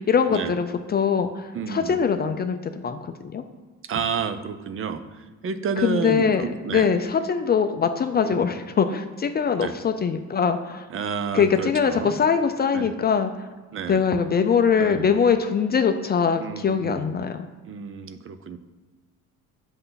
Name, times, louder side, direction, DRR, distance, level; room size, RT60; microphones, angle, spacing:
voice 1, 0.0-3.4 5.8-6.4 6.7-10.9 11.3-13.5 13.9-17.5, left 6 dB, 30° left, 7 dB, 0.5 m, -22 dB
voice 2, 1.5-2.0 3.8-6.9 8.2-8.4 9.6-9.7 10.9-12.2 12.7-12.9 13.7-14.0 14.8-15.1 16.4-17.1 17.7-18.6, right 6 dB, 45° right, 10 dB, 0.6 m, -30 dB
7.9 x 5.4 x 4.0 m, 1.4 s
cardioid pair, 120°, 31 cm